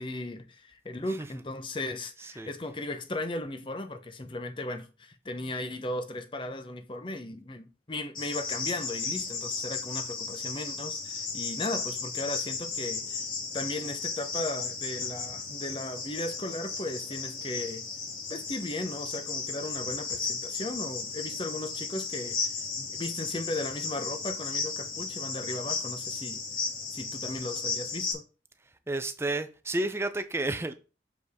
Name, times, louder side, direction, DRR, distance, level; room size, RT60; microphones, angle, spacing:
voice 1, 0.0-13.3 13.5-17.8 18.3-26.4 26.9-28.2, left 2 dB, 30° left, 0.7 m, -36 dB
Cricket, 8.1-28.1, left 4 dB, 50° left, 2.3 m, -35 dB
voice 2, 28.9-30.7, right 2 dB, 15° right, 0.5 m, -31 dB
6.4 x 5.1 x 3.5 m
head